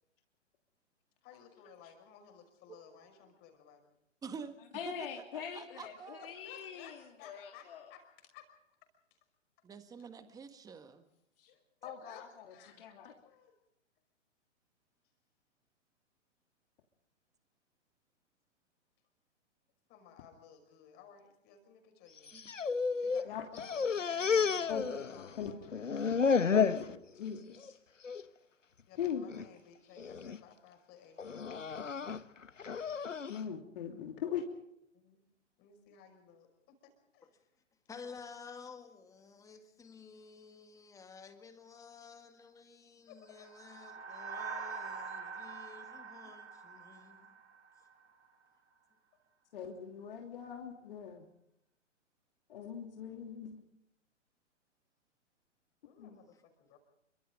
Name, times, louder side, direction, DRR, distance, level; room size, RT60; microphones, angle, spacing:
voice 1, 1.2-3.9 6.2-8.5 9.1-9.2 11.5-12.9 13.2-13.5 19.9-22.4 23.0-26.0 28.9-31.3 31.8-32.3 34.9-35.2 35.6-37.4 39.6-39.7 41.1-41.2 43.1-43.3 44.6-44.9 55.8-56.8, left 8 dB, 25° left, 5.7 m, -57 dB
voice 2, 4.2-4.6 4.8-5.1 5.3-6.3 9.6-11.0 22.3-22.5, right 5 dB, 10° right, 1.7 m, -47 dB
voice 3, 4.7-7.9 11.4-11.5 11.8-13.1 23.2-23.4 24.7-25.1 25.4-25.5 26.5-27.8 29.0-29.3 33.3-34.4 49.5-51.3 52.5-53.6 56.0-56.2, left 8 dB, 50° left, 3.1 m, -41 dB
sound 1, 22.2-23.3 23.5-25.4 25.7-26.9 27.3-27.7 28.0-28.2 29.1-29.5 30.0-30.4 31.2-33.4, left 6 dB, 80° left, 1.1 m, -32 dB
voice 4, 37.9-47.4, left 5 dB, 10° left, 2.0 m, -52 dB
sound 2, 43.4-47.9, right 5 dB, 75° right, 4.6 m, -44 dB
28.5 x 24.5 x 3.8 m
figure-of-eight pair, 125°, 37 cm